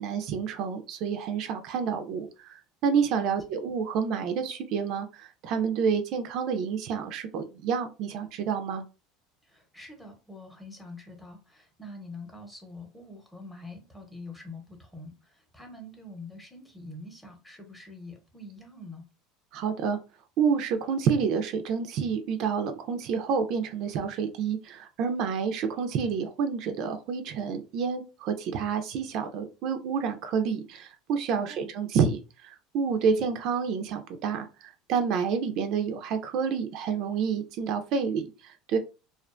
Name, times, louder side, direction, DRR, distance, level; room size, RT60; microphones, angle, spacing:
voice 1, 0.0-8.8 19.5-20.0 20.4-38.8, right 6 dB, 55° right, 7 dB, 0.4 m, -29 dB
voice 2, 9.4-19.0 31.3-31.7 33.1-33.2, left 2 dB, 5° left, 2 dB, 0.8 m, -45 dB
2.4 x 2.2 x 2.4 m, 0.31 s
supercardioid pair, 120°, 0 cm